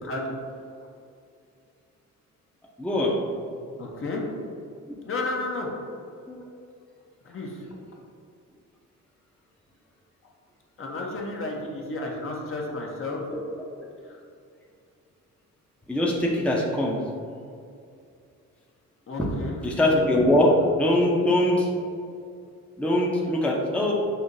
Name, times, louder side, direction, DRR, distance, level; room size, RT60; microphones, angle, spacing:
voice 1, 0.0-0.4 3.8-4.3 5.0-5.7 7.2-7.9 10.8-13.2 14.0-14.2 19.1-19.8, left 2 dB, 45° left, -1 dB, 0.8 m, -32 dB
voice 2, 2.8-3.1 3.7-4.0 6.3-6.4 15.9-17.0 19.6-21.7 22.8-23.9, left 1 dB, 5° left, -3 dB, 0.6 m, -22 dB
5.6 x 2.7 x 2.6 m, 2.4 s
cardioid pair, 90°, 30 cm